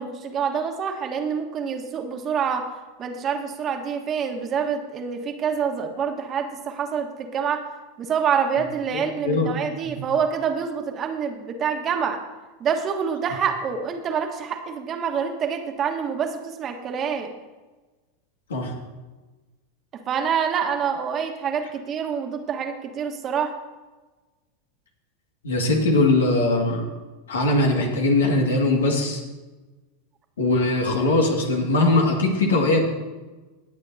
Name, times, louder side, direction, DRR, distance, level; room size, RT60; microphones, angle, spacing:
voice 1, 0.0-2.7 3.0-7.6 8.0-12.2 12.6-17.3 20.1-23.5, right 7 dB, 35° right, 5 dB, 1.4 m, -26 dB
voice 2, 8.9-9.5 10.0-10.1 18.5-18.7 25.4-26.9 27.3-29.2 30.4-32.9, left 2 dB, 80° left, 1 dB, 2.0 m, -21 dB
18.5 x 8.0 x 2.8 m, 1.2 s
hypercardioid pair, 95°, 0 cm